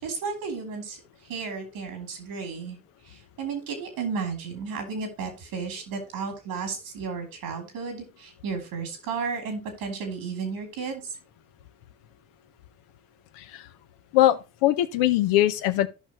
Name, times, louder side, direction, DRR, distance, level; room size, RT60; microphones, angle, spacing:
voice 1, 0.0-2.8 3.0-11.2, right 5 dB, 85° right, 2.9 m, -33 dB
voice 2, 14.1-15.9, left 14 dB, 90° left, 0.7 m, -22 dB
13.5 x 5.7 x 3.0 m
supercardioid pair, 60°, 35 cm